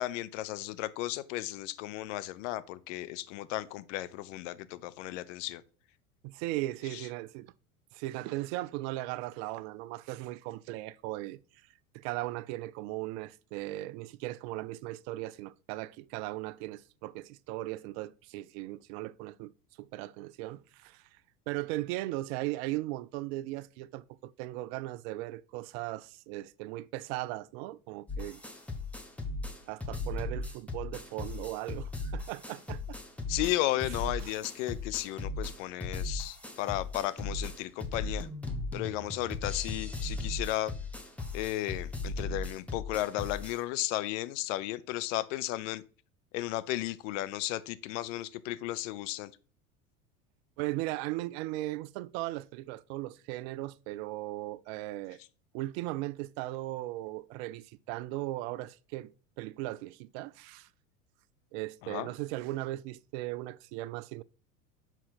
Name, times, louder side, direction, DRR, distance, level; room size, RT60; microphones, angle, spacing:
voice 1, 0.0-5.6 6.9-7.1 33.3-38.3 38.7-40.7 41.3-45.8 46.3-49.3 61.8-62.1, left 15 dB, 55° left, 0.6 m, -34 dB
voice 2, 6.2-7.5 7.9-11.4 11.9-19.5 19.8-21.1 21.5-28.4 29.7-33.0 34.2-34.4 50.6-55.2 55.5-60.7 61.5-64.2, right 17 dB, 50° right, 0.4 m, -37 dB
sound 1, 28.1-43.6, left 3 dB, 5° left, 1.0 m, -37 dB
5.7 x 4.4 x 4.0 m
hypercardioid pair, 80°, 44 cm